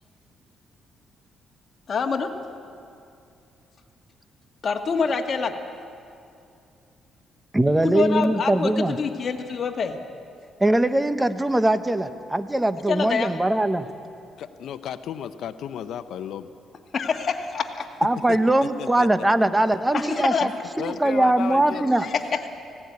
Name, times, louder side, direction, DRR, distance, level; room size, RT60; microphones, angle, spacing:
voice 1, 1.9-2.4 4.6-5.6 7.8-10.0 12.9-13.3 16.9-17.9 19.9-20.5 22.0-22.4, left 5 dB, 50° left, 4 dB, 1.8 m, -26 dB
voice 2, 7.5-8.9 10.6-13.9 18.0-20.5 20.8-22.1, right 1 dB, 10° right, 12 dB, 1.0 m, -21 dB
voice 3, 14.4-16.5 18.3-19.1 19.4-19.5 19.7-19.8 20.4-21.9, left 9 dB, 75° left, 12 dB, 0.7 m, -35 dB
17.5 x 16.5 x 9.6 m, 2.5 s
cardioid pair, 90°, 0 cm